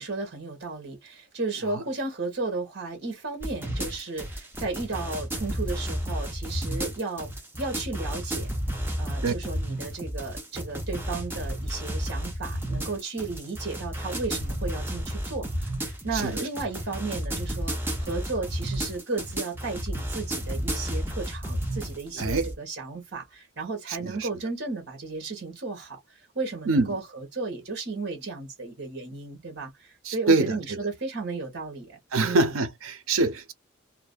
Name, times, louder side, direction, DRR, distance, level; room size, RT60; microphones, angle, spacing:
voice 1, 0.0-7.3 7.6-8.5 9.0-32.5, right 3 dB, 55° right, 1.1 m, -34 dB
sound 1, 3.4-22.5, equal, 10° right, 0.6 m, -32 dB
voice 2, 22.1-22.5 23.9-24.3 26.7-26.9 30.0-30.8 32.1-33.5, right 3 dB, 90° right, 0.6 m, -25 dB
2.5 x 2.1 x 2.4 m
head